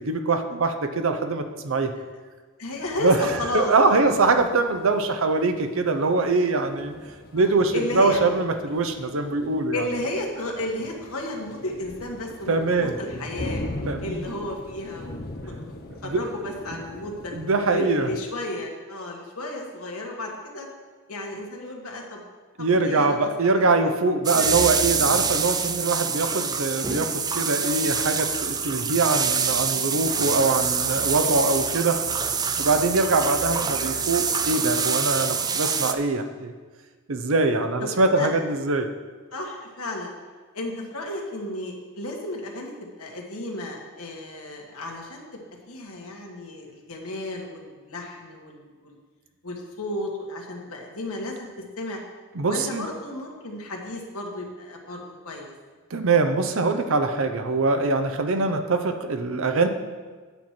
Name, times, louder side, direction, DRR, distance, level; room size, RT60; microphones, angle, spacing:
voice 1, 0.0-1.9 3.0-6.9 7.3-9.9 12.5-12.9 13.8-14.3 16.0-16.3 17.3-18.1 22.6-32.0 32.6-36.5 37.1-38.9 52.3-52.9 55.9-59.7, right 3 dB, 65° right, 8 dB, 0.7 m, -23 dB
voice 2, 2.6-3.7 4.0-4.1 7.4-8.3 9.7-13.7 14.0-15.2 15.5-17.3 17.7-20.7 21.1-22.2 22.6-23.3 24.3-24.5 25.8-26.0 26.3-26.4 32.6-32.8 37.8-38.3 39.3-40.1 40.5-45.4 45.7-48.9 49.4-51.5 51.8-52.0 52.4-55.5, left 1 dB, 85° left, 0 dB, 1.6 m, -33 dB
sound 1, 2.6-18.2, left 1 dB, 45° left, 1.0 m, -40 dB
sound 2, 24.2-35.9, right 6 dB, 20° right, 0.3 m, -26 dB
9.0 x 4.4 x 7.4 m, 1.4 s
head